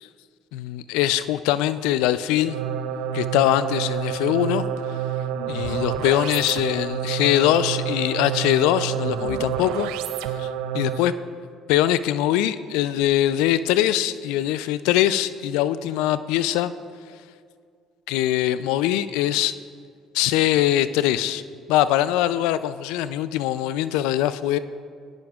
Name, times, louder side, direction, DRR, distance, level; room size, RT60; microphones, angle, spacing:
voice 1, 0.5-2.6 3.1-4.6 5.5-9.9 10.4-10.5 10.7-11.1 11.7-16.7 18.1-19.5 20.1-21.4 21.7-24.6, left 13 dB, 80° left, 14 dB, 0.4 m, -22 dB
sound 1, 2.4-11.2, right 9 dB, 80° right, 0.4 m, -28 dB
18.0 x 10.0 x 2.4 m, 2.1 s
supercardioid pair, 70°, 0 cm